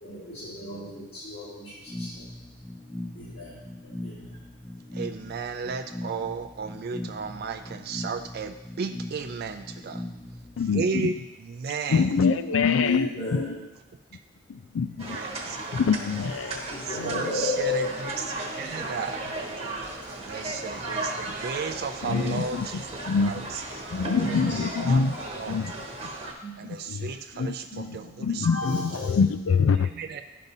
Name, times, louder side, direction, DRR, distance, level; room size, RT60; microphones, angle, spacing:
voice 1, 0.0-2.2 3.1-4.4 12.8-13.5 16.7-17.9 18.6-18.7 20.0-20.1 22.0-22.4 24.0-24.5 25.2-25.3 26.4-26.7 27.8-29.2, left 2 dB, 55° left, -11 dB, 2.1 m, -34 dB
sound 1, 1.9-10.9, left 1 dB, 15° left, 0.5 m, -40 dB
voice 2, 4.9-10.1 10.7-11.2 11.5-12.1 15.1-15.6 16.4-16.5 16.9-19.2 20.2-22.8 23.2-23.6 24.5-25.0 25.4-25.6 26.6-28.8 29.8-30.2, right 5 dB, 55° right, 7 dB, 0.4 m, -34 dB
voice 3, 10.6-11.1 11.9-13.6 14.8-15.2 15.7-16.6 22.0-22.7 23.1-23.4 23.9-25.1 25.5-25.7 26.6-27.9 28.2-29.9, left 5 dB, 85° left, 12 dB, 0.4 m, -25 dB
sound 2, 15.0-26.3, right 2 dB, 30° right, 1.1 m, -35 dB
12.0 x 5.3 x 2.7 m, 1.0 s
head